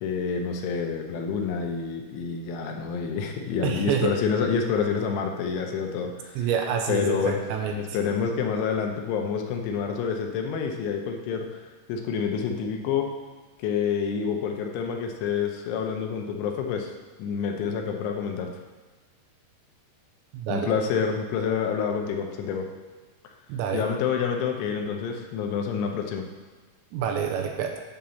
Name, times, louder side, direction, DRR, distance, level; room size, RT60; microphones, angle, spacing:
voice 1, 0.0-6.4 6.9-7.4 7.7-13.1 13.6-16.9 17.2-18.5 20.5-22.7 23.7-26.2, left 6 dB, 85° left, 3 dB, 3.3 m, -28 dB
voice 2, 3.6-4.1 6.4-8.0 20.3-20.7 23.5-23.8 26.9-27.8, right 7 dB, 85° right, 3 dB, 2.8 m, -27 dB
9.4 x 3.8 x 7.0 m, 1.3 s
omnidirectional pair, 5.3 m